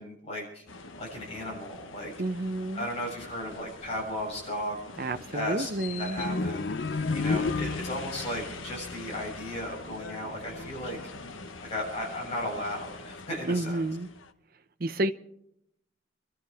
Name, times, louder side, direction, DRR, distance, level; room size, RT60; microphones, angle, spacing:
voice 1, 0.0-2.1 2.7-4.8 5.3-5.7 6.0-11.0 11.3-13.9, left 1 dB, 30° left, 7.2 m, -35 dB
sound 1, 0.7-14.3, left 3 dB, 90° left, 1.1 m, -43 dB
voice 2, 2.2-2.9 5.0-6.2 13.4-14.1 14.8-15.1, right 2 dB, 50° right, 0.8 m, -30 dB
sound 2, 6.2-8.2, left 3 dB, 60° left, 0.7 m, -29 dB
28.5 x 13.0 x 3.5 m
head